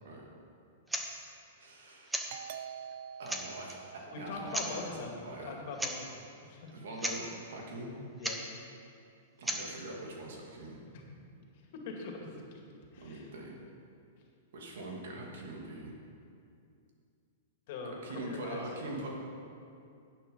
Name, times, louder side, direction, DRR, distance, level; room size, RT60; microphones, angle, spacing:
sound 1, 0.9-1.1 2.1-2.3 2.9-3.0 3.3-3.8 4.5-4.7 5.8-6.0 6.2-6.3 6.7-6.8 7.0-7.2 8.2-8.4 9.4-9.6, right 1 dB, 5° right, 1.1 m, -35 dB
voice 1, 1.6-2.2 3.2-5.6 6.7-7.9 9.4-10.8 13.0-13.5 14.5-16.0 18.0-19.1, right 1 dB, 75° right, -1 dB, 2.6 m, -43 dB
Doorbell, 2.3-5.6, right 8 dB, 55° right, 0.6 m, -47 dB
voice 2, 4.1-6.7 8.2-8.4 11.7-12.6 12.9-13.3 17.7-18.6, left 4 dB, 55° left, 1 dB, 2.2 m, -42 dB
10.5 x 8.9 x 5.6 m, 2.5 s
hypercardioid pair, 135°, 0 cm